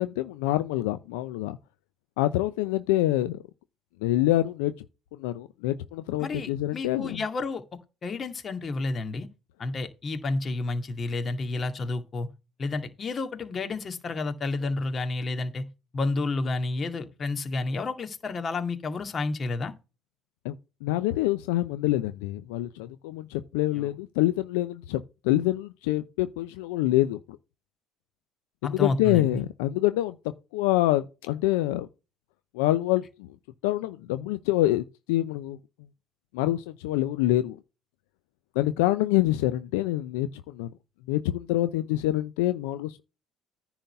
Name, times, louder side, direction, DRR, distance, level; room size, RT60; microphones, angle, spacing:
voice 1, 0.0-1.6 2.2-3.4 4.0-4.7 5.2-7.2 20.4-20.6 20.8-27.4 28.6-30.1 30.5-31.9 32.5-33.3 33.6-35.6 36.3-37.6 38.6-40.7 41.1-43.0, left 15 dB, 85° left, 0.6 m, -26 dB
voice 2, 6.2-7.6 8.0-9.3 9.6-12.3 12.6-15.6 15.9-19.7 23.8-23.9 28.6-29.4, left 3 dB, 40° left, 2.1 m, -30 dB
10.0 x 4.0 x 6.7 m
hypercardioid pair, 70°, 0 cm